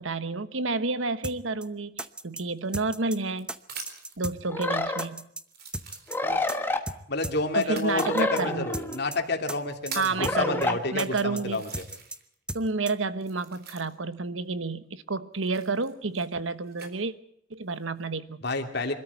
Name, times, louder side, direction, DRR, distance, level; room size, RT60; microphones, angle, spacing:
voice 1, 0.0-3.5 4.2-5.3 7.5-8.7 9.9-11.6 12.5-17.1 17.5-18.4, right 3 dB, 80° right, 13 dB, 1.2 m, -30 dB
sound 1, 1.2-1.4 1.6-1.7 2.0-2.4 2.7-3.2 3.5-3.6 3.9-4.4 4.6-4.7 5.0-5.4 5.7-6.2 6.5-6.6 6.9-7.0 7.2-7.4 7.6-7.7 8.0-8.4 8.7-9.2 9.5-9.6 9.9-10.4 10.6-10.7 11.0-11.4 11.7-12.2 12.5-12.6 12.9-13.0, right 1 dB, 5° right, 0.8 m, -35 dB
sound 2, 2.5-4.2 4.9-5.0 5.5-6.5 7.6-8.0 8.8-8.9 9.5-10.3 10.9-11.0 11.4-12.3 12.6-14.1 15.4-16.9 17.6-18.1, right 5 dB, 55° right, 4.0 m, -43 dB
sound 3, 4.5-5.0 6.1-6.8 7.9-9.0 10.2-10.8, left 2 dB, 10° left, 1.5 m, -28 dB
voice 2, 7.1-11.8 18.4-18.9, left 2 dB, 55° left, 4 dB, 2.7 m, -29 dB
24.5 x 13.5 x 8.4 m, 0.69 s
head